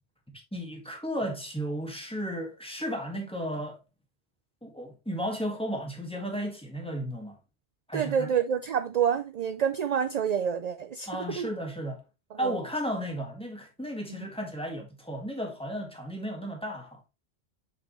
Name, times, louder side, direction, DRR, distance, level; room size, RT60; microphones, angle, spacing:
voice 1, 0.3-3.8 4.6-7.4 7.9-8.3 11.1-12.0 12.4-17.0, equal, 5° left, 1.7 m, -34 dB
voice 2, 7.9-11.1 11.4-11.5 12.4-12.5 14.2-14.3, right 8 dB, 55° right, 0.5 m, -27 dB
6.8 x 5.1 x 3.0 m
omnidirectional pair, 1.1 m